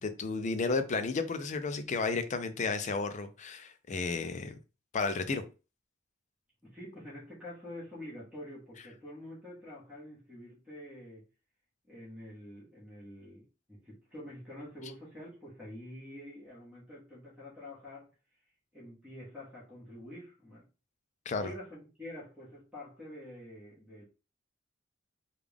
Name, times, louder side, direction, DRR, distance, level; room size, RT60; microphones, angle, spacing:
voice 1, 0.0-4.6 4.9-5.4 21.3-21.5, left 4 dB, 40° left, 0.4 m, -32 dB
voice 2, 6.6-11.2 11.9-18.1 18.7-20.6 21.4-24.0, left 1 dB, 5° right, 1.4 m, -47 dB
3.5 x 2.4 x 3.4 m
head